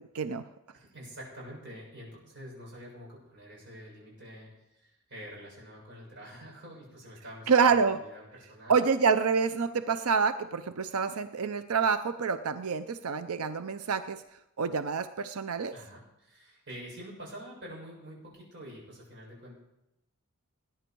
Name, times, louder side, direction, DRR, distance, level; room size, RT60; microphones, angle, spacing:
voice 1, 0.7-8.8 15.7-19.6, equal, 55° right, -3 dB, 7.1 m, -47 dB
voice 2, 7.5-8.0 8.7-14.2 14.6-15.7, right 5 dB, 90° right, 11 dB, 0.6 m, -27 dB
19.5 x 10.0 x 4.6 m, 0.87 s
head